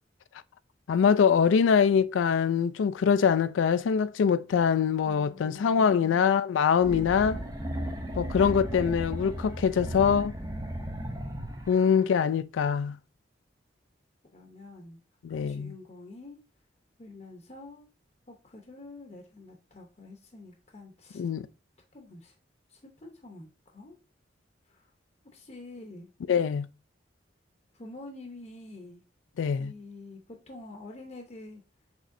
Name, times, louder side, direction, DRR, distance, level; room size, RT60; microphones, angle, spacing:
voice 1, 0.9-7.4 8.2-10.3 11.7-13.0 15.2-15.7 21.1-21.4 26.3-26.7 29.4-29.7, left 7 dB, 90° left, 0.3 m, -24 dB
sound 1, 6.8-12.0, equal, 20° right, 0.6 m, -35 dB
voice 2, 14.3-15.0 15.3-16.4 17.0-17.8 18.3-21.3 21.9-22.3 22.7-24.0 24.7-24.9 25.3-26.1 27.7-29.0 29.6-31.6, left 2 dB, 35° left, 0.7 m, -47 dB
6.3 x 3.1 x 2.5 m
head